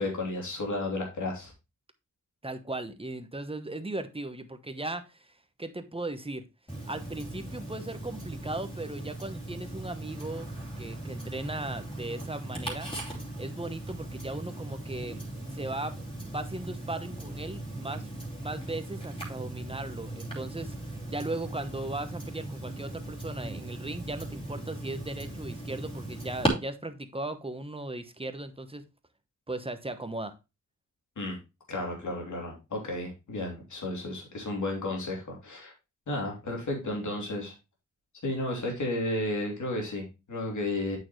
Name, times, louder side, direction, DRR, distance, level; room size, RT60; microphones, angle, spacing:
voice 1, 0.0-1.5 31.2-31.4 31.7-35.7 36.1-37.5 38.2-41.0, left 2 dB, 80° left, 1 dB, 3.1 m, -33 dB
voice 2, 2.4-5.3 5.6-6.4 6.9-10.5 10.8-12.9 13.4-16.0 16.3-28.8 29.5-30.3, right 2 dB, 20° right, 9 dB, 1.0 m, -37 dB
Tick-tock, 6.7-26.5, right 1 dB, 20° left, 3.0 m, -38 dB
8.6 x 6.3 x 3.1 m, 0.26 s
wide cardioid pair, 95°, 30 cm